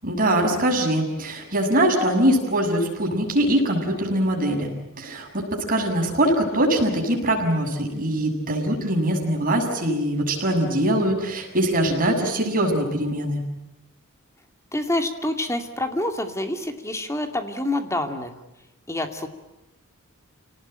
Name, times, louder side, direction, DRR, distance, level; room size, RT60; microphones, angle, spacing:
voice 1, 0.0-4.7 5.0-13.4, right 1 dB, 40° right, 1 dB, 7.1 m, -22 dB
voice 2, 14.7-18.3 18.9-19.3, left 1 dB, 15° left, 6 dB, 2.5 m, -27 dB
29.0 x 19.0 x 9.0 m, 0.97 s
head